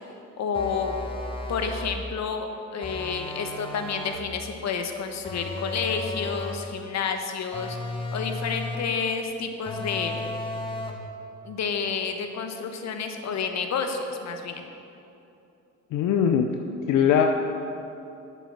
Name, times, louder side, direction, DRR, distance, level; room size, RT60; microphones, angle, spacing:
voice 1, 0.4-1.0 1.5-7.8 8.1-10.3 11.4-14.6, left 5 dB, 60° left, 5 dB, 1.1 m, -30 dB
sound 1, 0.5-2.0 2.8-4.3 5.2-6.7 7.5-9.0 9.6-11.1, left 2 dB, 15° left, 1.3 m, -34 dB
voice 2, 15.9-16.5 16.9-17.3, left 8 dB, 85° left, 4 dB, 0.6 m, -20 dB
8.5 x 6.9 x 7.4 m, 2.8 s
cardioid pair, 90°, 30 cm